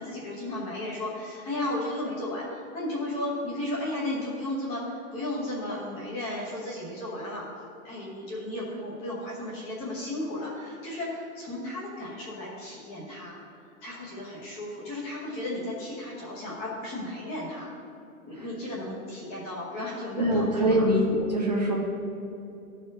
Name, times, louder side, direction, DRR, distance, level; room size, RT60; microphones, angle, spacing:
voice 1, 0.0-7.5 7.8-13.4 13.8-17.7 18.2-21.1, left 1 dB, 15° left, -5 dB, 1.0 m, -34 dB
voice 2, 20.2-21.0 21.3-21.7, right 1 dB, 30° right, -1 dB, 0.5 m, -23 dB
12.5 x 4.4 x 3.7 m, 2.7 s
hypercardioid pair, 175°, 44 cm